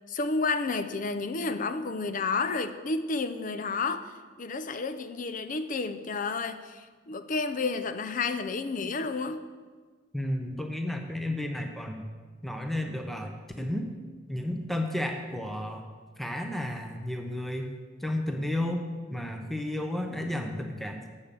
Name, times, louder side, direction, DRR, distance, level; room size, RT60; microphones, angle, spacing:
voice 1, 0.1-4.1 4.4-9.4, left 4 dB, 40° left, 10 dB, 0.5 m, -31 dB
voice 2, 10.1-12.1 12.4-13.3 13.6-13.9 14.3-15.8 16.2-17.7 18.0-18.8 19.1-21.1, left 1 dB, ahead, 4 dB, 0.8 m, -32 dB
8.6 x 7.3 x 6.8 m, 1.5 s
head